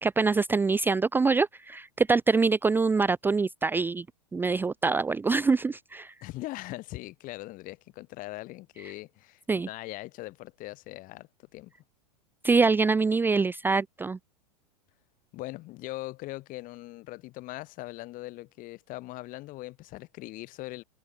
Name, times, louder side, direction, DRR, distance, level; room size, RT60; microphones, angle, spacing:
voice 1, 0.0-4.0 4.3-6.1 9.5-9.7 12.4-14.2, right 4 dB, 10° right, 0.7 m, -24 dB
voice 2, 6.2-11.7 15.3-20.8, left 19 dB, 40° left, 5.3 m, -41 dB
hypercardioid pair, 105°, 21 cm